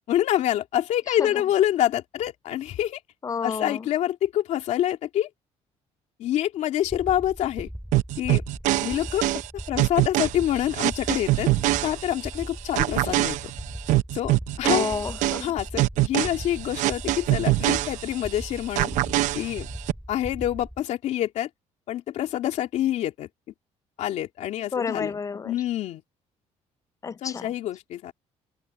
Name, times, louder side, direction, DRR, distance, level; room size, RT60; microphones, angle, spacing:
voice 1, 0.1-3.0 3.4-5.3 6.2-7.7 8.2-8.4 8.8-9.3 9.7-11.5 11.8-13.4 14.1-14.3 14.6-14.9 15.4-18.9 19.3-19.7 20.1-21.5 21.9-23.3 24.0-25.1 25.4-26.0 27.2-28.1, left 12 dB, 70° left, 2.9 m, -26 dB
voice 2, 1.1-1.4 3.2-3.9 14.6-15.5 24.7-25.5 27.0-27.5, left 5 dB, 25° left, 0.5 m, -30 dB
sound 1, 6.8-20.8, equal, ahead, 3.7 m, -39 dB
sound 2, 7.9-12.4 12.8-18.4 18.8-19.9, right 17 dB, 85° right, 0.6 m, -24 dB
cardioid pair, 130°, 12 cm